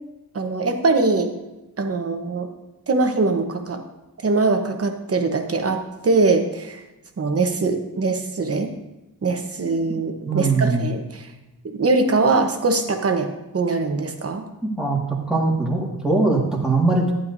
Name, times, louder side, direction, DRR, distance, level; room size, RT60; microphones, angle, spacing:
voice 1, 0.3-1.3 1.8-2.5 2.9-3.8 4.2-6.8 7.2-8.7 9.2-11.3 11.6-14.4, right 3 dB, 40° right, 5 dB, 1.0 m, -22 dB
voice 2, 10.2-10.9 14.7-15.0 15.3-17.1, right 3 dB, ahead, -3 dB, 1.8 m, -21 dB
12.0 x 10.5 x 2.6 m, 1.0 s
wide cardioid pair, 165°, 37 cm